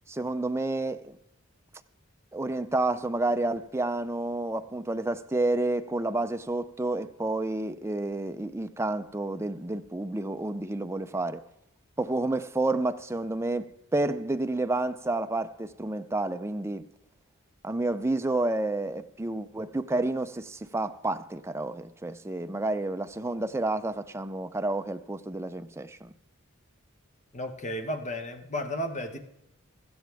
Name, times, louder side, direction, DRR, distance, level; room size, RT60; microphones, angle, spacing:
voice 1, 0.1-1.2 2.3-11.4 12.0-16.9 17.6-26.1, right 2 dB, 10° right, 0.5 m, -30 dB
voice 2, 27.3-29.2, left 1 dB, 35° left, 1.2 m, -33 dB
16.5 x 13.5 x 3.5 m
head